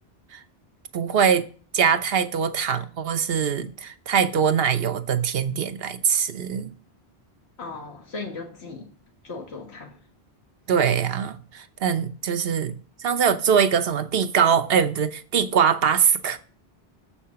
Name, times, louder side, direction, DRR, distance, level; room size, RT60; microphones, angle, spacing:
voice 1, 0.9-1.5 1.7-6.7 10.7-16.4, right 7 dB, 70° right, 1.0 m, -22 dB
voice 2, 7.6-8.9 9.2-10.0, left 3 dB, 85° left, 1.8 m, -37 dB
7.4 x 5.7 x 5.7 m
omnidirectional pair, 1.1 m